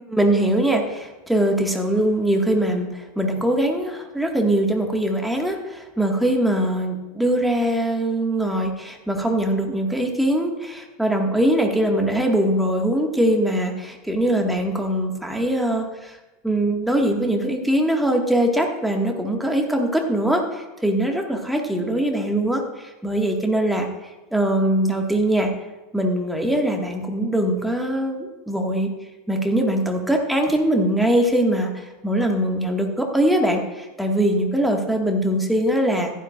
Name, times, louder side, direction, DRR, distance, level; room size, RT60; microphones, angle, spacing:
voice 1, 0.1-16.2 16.4-23.9 24.3-25.5 25.9-28.9 29.3-36.1, right 1 dB, ahead, 1 dB, 1.9 m, -22 dB
14.5 x 12.0 x 2.5 m, 1.1 s
figure-of-eight pair, 80°, 0 cm